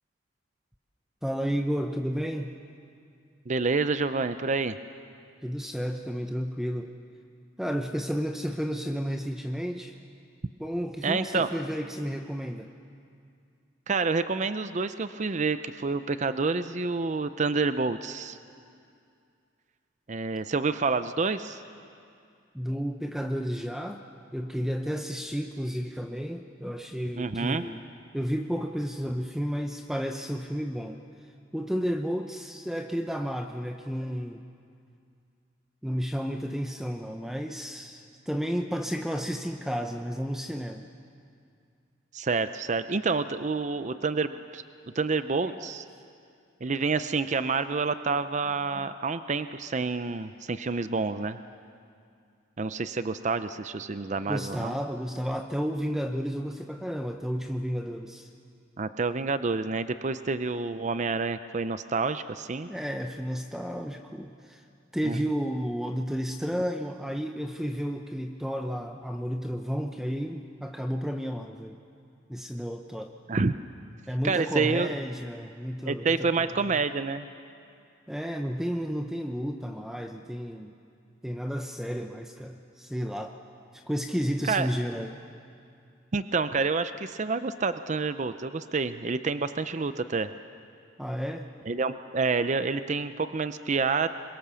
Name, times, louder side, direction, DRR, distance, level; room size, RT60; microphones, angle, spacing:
voice 1, 1.2-2.5 5.4-6.9 7.6-10.0 10.6-12.7 22.5-24.0 24.3-27.8 28.1-31.0 31.5-34.4 35.8-40.9 45.4-45.7 48.8-48.9 54.3-58.3 62.7-64.6 64.9-71.8 72.3-73.1 74.1-76.7 78.1-80.7 81.2-83.3 83.7-85.2 91.0-91.5, equal, ahead, 4 dB, 0.7 m, -32 dB
voice 2, 3.5-4.8 11.0-11.5 13.9-18.4 20.1-21.6 27.2-27.6 42.1-44.6 44.9-45.8 46.6-51.4 52.6-54.7 58.8-62.7 65.0-65.2 73.3-73.6 74.2-74.9 75.9-77.3 84.5-84.7 86.1-90.3 91.7-94.1, right 4 dB, 40° right, 11 dB, 0.6 m, -28 dB
26.5 x 22.5 x 7.0 m, 2.4 s
head